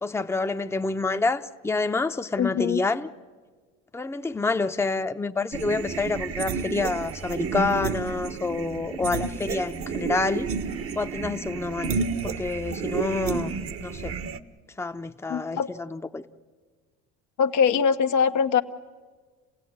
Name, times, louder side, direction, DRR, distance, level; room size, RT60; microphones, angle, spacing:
voice 1, 0.0-3.1 3.9-10.5 11.0-12.0 12.2-14.2 14.8-16.2, left 3 dB, 10° left, 0.8 m, -28 dB
voice 2, 2.4-2.8 15.3-15.7 17.4-18.6, left 7 dB, 70° left, 1.1 m, -22 dB
sound 1, 5.5-14.4, right 5 dB, 50° right, 1.1 m, -31 dB
28.0 x 16.5 x 9.6 m
supercardioid pair, 85°, 30 cm